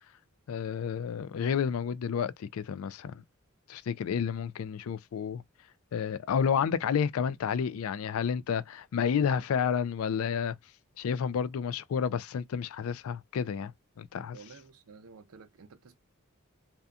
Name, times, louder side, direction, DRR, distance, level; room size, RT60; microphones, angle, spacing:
voice 1, 0.5-3.1 3.7-5.4 5.9-10.6 11.0-13.7 14.0-14.4, left 7 dB, 70° left, 0.3 m, -30 dB
voice 2, 14.3-16.0, right 5 dB, 75° right, 0.5 m, -52 dB
2.7 x 2.2 x 2.4 m
head